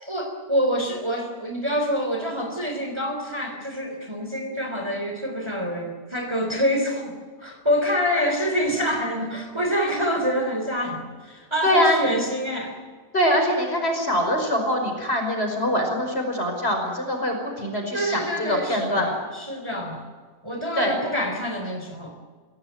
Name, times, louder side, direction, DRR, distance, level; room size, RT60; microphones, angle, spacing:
voice 1, 0.0-12.8 17.9-20.0 20.4-22.1, equal, 15° right, 3 dB, 3.5 m, -26 dB
voice 2, 11.6-12.0 13.1-18.2 18.5-19.1 20.8-21.0, equal, 35° left, 3 dB, 5.6 m, -23 dB
25.0 x 17.0 x 9.4 m, 1.5 s
omnidirectional pair, 1.7 m